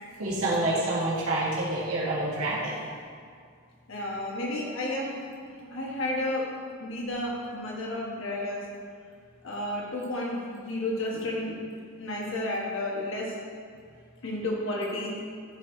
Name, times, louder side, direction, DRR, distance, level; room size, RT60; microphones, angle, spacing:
voice 1, 0.2-2.8, right 2 dB, 85° right, -6 dB, 1.8 m, -27 dB
voice 2, 3.9-5.2 5.5-8.7 9.4-11.7 12.0-13.4 14.2-15.2, left 1 dB, 65° left, -2 dB, 1.2 m, -32 dB
12.0 x 4.1 x 3.9 m, 2.1 s
head